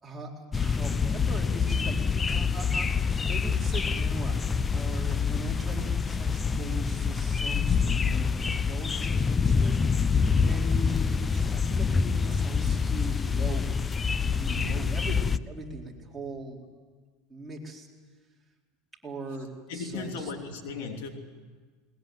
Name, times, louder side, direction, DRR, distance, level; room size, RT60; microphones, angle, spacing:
voice 1, 0.0-4.5 4.7-9.8 10.3-16.6 17.3-17.9 19.0-19.5 19.7-20.3 20.7-21.1, right 2 dB, 10° right, -3 dB, 4.4 m, -40 dB
sound 1, 0.5-15.4, left 5 dB, 20° left, 0.6 m, -26 dB
voice 2, 14.5-14.9 19.7-21.1, left 4 dB, 80° left, 4 dB, 3.2 m, -36 dB
21.0 x 20.5 x 9.4 m, 1.4 s
supercardioid pair, 125°, 0 cm